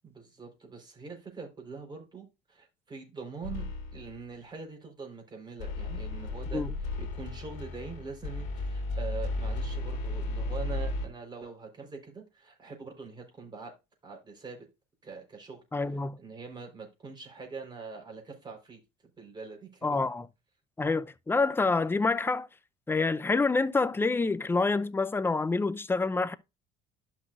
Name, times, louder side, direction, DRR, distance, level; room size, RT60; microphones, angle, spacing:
voice 1, 0.0-3.6 3.9-13.7 14.0-14.7 15.0-15.6 16.2-18.8 19.2-20.0, right 4 dB, 25° right, 4.0 m, -43 dB
sound 1, 3.4-4.2 5.6-11.1, left 2 dB, 90° left, 1.8 m, -34 dB
voice 2, 15.7-16.2 19.8-20.3 20.8-22.5 22.9-26.3, left 3 dB, 10° left, 0.6 m, -27 dB
11.5 x 6.0 x 2.5 m
supercardioid pair, 95°, 18 cm